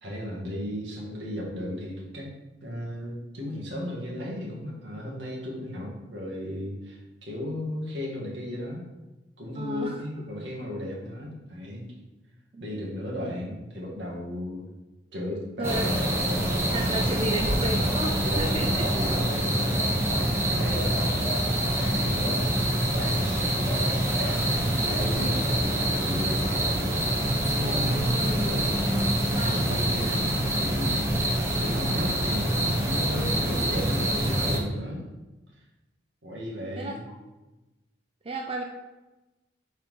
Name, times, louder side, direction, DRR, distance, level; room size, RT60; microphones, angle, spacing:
voice 1, 0.0-2.3 2.6-8.9 9.4-11.9 12.6-14.7 15.1-15.9 18.2-20.2 20.5-22.7 22.9-23.9 24.2-26.6 28.2-28.8 29.3-31.2 31.6-35.1 36.2-37.0, left 1 dB, 75° right, -3 dB, 1.9 m, -35 dB
voice 2, 9.6-10.0 12.5-12.6 15.6-15.9 16.7-18.9 27.6-28.4 29.3-29.7 36.8-36.9 38.2-38.6, right 2 dB, 30° right, 1 dB, 0.5 m, -33 dB
sound 1, 15.6-34.6, right 1 dB, 15° right, 1.1 m, -25 dB
4.7 x 4.3 x 5.4 m, 1.1 s
head